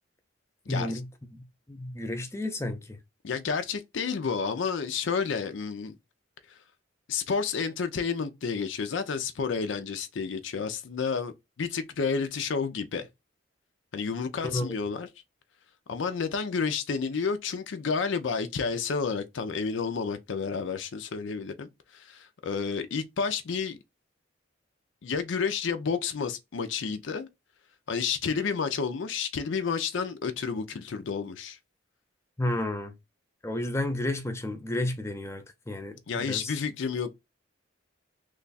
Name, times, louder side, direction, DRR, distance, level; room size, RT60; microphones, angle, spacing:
voice 1, 0.7-1.1 1.3-1.4 1.7-3.0 14.4-14.7 32.4-32.9 33.4-36.5, left 1 dB, 15° left, 0.5 m, -31 dB
voice 2, 3.2-5.9 6.5-6.6 7.1-11.3 11.6-13.1 13.9-15.1 15.9-23.8 25.0-27.3 27.9-31.6 36.1-37.1, left 5 dB, 65° left, 0.4 m, -30 dB
3.2 x 2.3 x 3.9 m
head